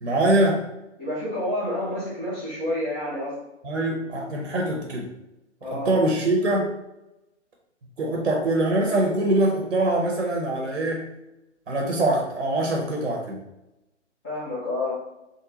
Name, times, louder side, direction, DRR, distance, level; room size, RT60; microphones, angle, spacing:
voice 1, 0.0-0.6 3.6-5.1 5.7-6.7 8.0-11.0 11.7-13.4, right 1 dB, 70° right, 0 dB, 0.8 m, -23 dB
voice 2, 1.0-3.4 5.6-6.0 14.2-14.9, left 1 dB, 5° left, -10 dB, 0.4 m, -29 dB
3.7 x 2.2 x 3.0 m, 0.91 s
figure-of-eight pair, 125°, 36 cm